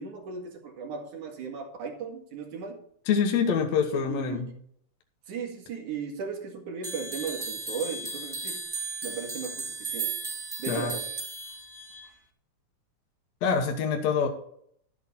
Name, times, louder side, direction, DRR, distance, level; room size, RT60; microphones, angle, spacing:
voice 1, 0.0-2.8 3.9-4.4 5.3-8.6 9.0-10.1 10.6-11.1, right 6 dB, 80° right, 2 dB, 3.5 m, -36 dB
voice 2, 3.1-4.5 10.7-11.0 13.4-14.3, left 6 dB, 65° left, 3 dB, 2.4 m, -25 dB
sound 1, 6.8-12.1, right 3 dB, 10° right, 1.3 m, -35 dB
12.0 x 8.6 x 4.2 m, 0.65 s
omnidirectional pair, 3.4 m